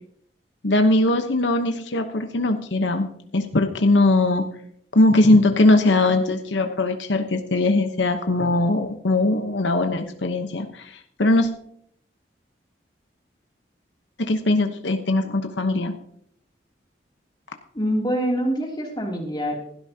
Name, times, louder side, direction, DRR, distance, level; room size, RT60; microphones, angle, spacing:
voice 1, 0.6-4.5 4.9-11.5 14.2-16.0, left 2 dB, 85° left, 6 dB, 1.0 m, -20 dB
voice 2, 17.7-19.6, equal, 25° left, 0 dB, 2.9 m, -25 dB
16.0 x 12.5 x 2.9 m, 0.66 s
head